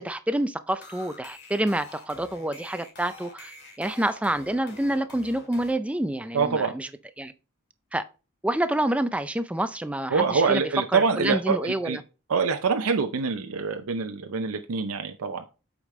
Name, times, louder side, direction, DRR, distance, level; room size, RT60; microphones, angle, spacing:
voice 1, 0.0-6.9 7.2-7.3 7.9-8.1 8.4-10.6 10.9-12.0, right 1 dB, 5° right, 0.4 m, -28 dB
sound 1, 0.7-5.7, left 3 dB, 50° left, 2.1 m, -46 dB
voice 2, 6.3-6.7 10.1-12.0 12.3-15.5, right 5 dB, 85° right, 0.6 m, -25 dB
8.2 x 5.1 x 3.1 m
head